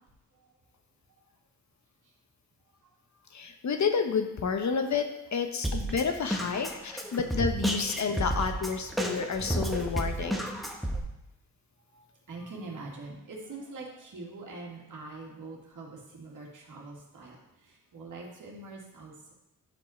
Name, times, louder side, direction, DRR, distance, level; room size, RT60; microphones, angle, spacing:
voice 1, 3.3-10.5, left 5 dB, 55° left, 6 dB, 1.0 m, -30 dB
Drum kit, 5.6-11.0, right 1 dB, ahead, 1.3 m, -31 dB
voice 2, 11.9-17.4 17.7-19.3, right 3 dB, 60° right, -2 dB, 2.4 m, -44 dB
9.0 x 5.3 x 4.4 m, 0.88 s
cardioid pair, 60°, 34 cm